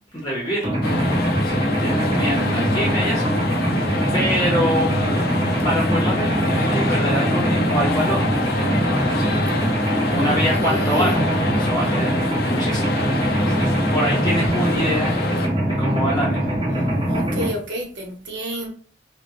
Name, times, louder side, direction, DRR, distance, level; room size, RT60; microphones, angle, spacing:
voice 1, 0.1-0.8 1.4-3.3 4.1-4.9 5.6-8.4 9.0-9.4 10.1-12.1 12.4-13.0 13.5-15.5 15.8-16.6, equal, 20° left, -6 dB, 0.8 m, -25 dB
Mechanisms, 0.6-17.5, right 1 dB, 25° right, 0.7 m, -22 dB
sound 1, 0.8-15.5, left 3 dB, 55° left, 0.4 m, -27 dB
voice 2, 2.3-2.8 10.2-11.1 17.0-18.7, equal, 70° right, 1 dB, 1.0 m, -30 dB
3.5 x 2.2 x 3.0 m, 0.42 s
head